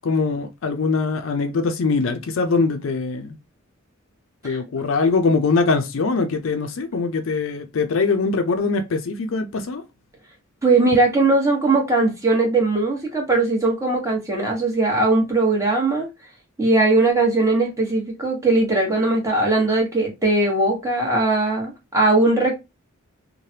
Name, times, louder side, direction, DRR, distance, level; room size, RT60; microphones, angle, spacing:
voice 1, 0.0-3.4 4.4-9.8, left 4 dB, 70° left, 0.4 m, -22 dB
voice 2, 10.6-16.1 16.6-22.5, right 2 dB, 15° right, 1.0 m, -19 dB
3.2 x 2.1 x 2.7 m
head